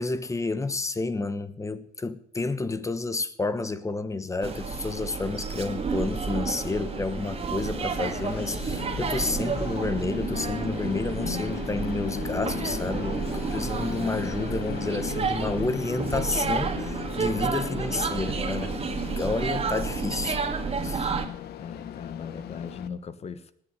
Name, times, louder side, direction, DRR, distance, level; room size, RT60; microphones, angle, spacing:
voice 1, 0.0-18.7 19.2-20.4 20.8-21.1, left 3 dB, 20° left, 1.0 m, -30 dB
Train, 4.4-22.9, left 11 dB, 70° left, 1.1 m, -38 dB
sound 1, 4.4-21.3, right 5 dB, 35° right, 2.0 m, -31 dB
voice 2, 19.0-19.4 19.6-19.7 21.6-23.5, left 6 dB, 40° left, 1.3 m, -40 dB
18.5 x 7.0 x 9.6 m
cardioid pair, 110°, 17 cm